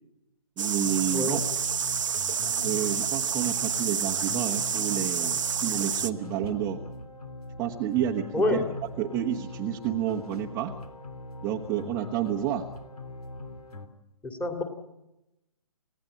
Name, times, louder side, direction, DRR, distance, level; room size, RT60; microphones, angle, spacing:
voice 1, 0.6-1.4 2.6-6.8 7.6-8.6 9.0-10.7 11.4-12.7, right 10 dB, 15° right, -1 dB, 1.1 m, -30 dB
sound 1, 0.6-6.1, right 7 dB, 55° right, 1.0 m, -29 dB
sound 2, 0.8-13.9, left 2 dB, 85° left, 3.0 m, -41 dB
voice 2, 14.2-14.6, left 2 dB, 5° left, 4 dB, 2.2 m, -26 dB
29.0 x 16.5 x 8.8 m, 0.94 s
figure-of-eight pair, 140°, 19 cm